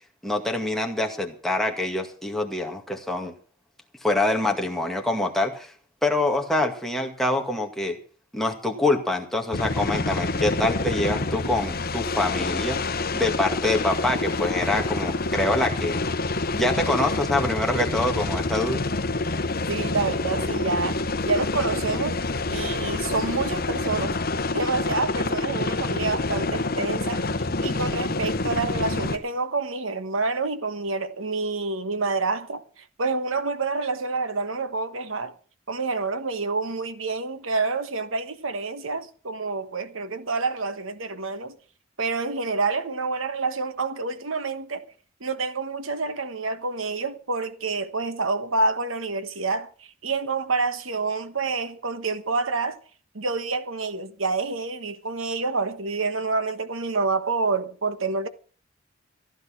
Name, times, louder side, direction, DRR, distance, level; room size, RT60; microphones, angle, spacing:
voice 1, 0.2-3.3 4.0-5.7 6.0-8.0 8.3-12.8 13.1-16.0 16.5-18.8, left 2 dB, ahead, 2.1 m, -25 dB
sound 1, 9.5-29.2, left 3 dB, 50° left, 1.2 m, -27 dB
voice 2, 19.7-22.2 22.5-24.2 24.5-35.3 35.7-41.6 42.0-44.8 45.2-52.8 53.1-58.3, right 3 dB, 75° right, 1.3 m, -28 dB
15.0 x 11.0 x 6.0 m
head